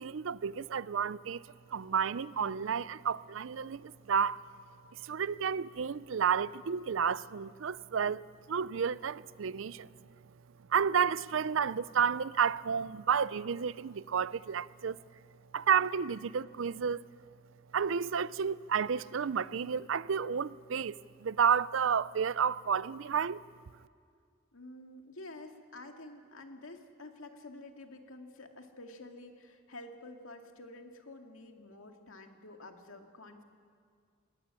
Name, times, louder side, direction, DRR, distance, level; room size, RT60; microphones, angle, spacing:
voice 1, 0.0-1.4 1.7-4.4 5.0-9.9 10.7-15.0 15.5-17.0 17.7-21.0 21.2-23.4, right 7 dB, 70° right, 0.5 m, -31 dB
voice 2, 24.5-33.4, left 2 dB, 85° left, 2.2 m, -49 dB
21.0 x 17.5 x 9.9 m
head